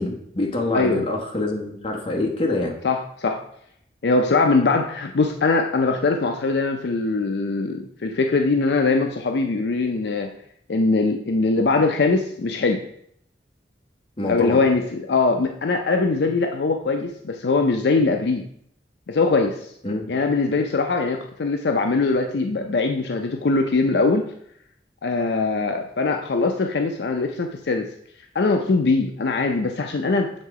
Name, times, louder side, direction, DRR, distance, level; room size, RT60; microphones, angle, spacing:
voice 1, 0.0-2.7 14.2-14.6 19.8-20.1, left 2 dB, 30° left, 0 dB, 1.2 m, -25 dB
voice 2, 0.7-1.0 2.8-3.4 4.0-10.3 10.7-12.8 14.3-18.4 19.1-19.6 20.1-24.3 25.0-27.9 28.3-30.3, left 3 dB, 65° left, 4 dB, 0.5 m, -21 dB
7.3 x 3.6 x 4.7 m, 0.70 s
head